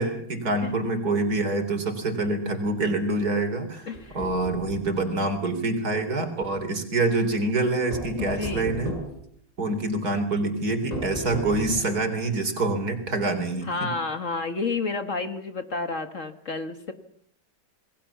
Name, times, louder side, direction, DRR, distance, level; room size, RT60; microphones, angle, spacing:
voice 1, 0.0-3.9 4.1-9.0 9.6-13.7, right 2 dB, 55° right, 7 dB, 4.1 m, -26 dB
voice 2, 3.9-4.2 8.2-8.7 13.6-16.9, left 4 dB, 45° left, 9 dB, 1.8 m, -30 dB
sound 1, 3.9-4.9 7.9-9.2 10.9-12.1, equal, 20° left, 5.9 m, -35 dB
28.0 x 20.5 x 7.2 m, 0.67 s
omnidirectional pair, 2.0 m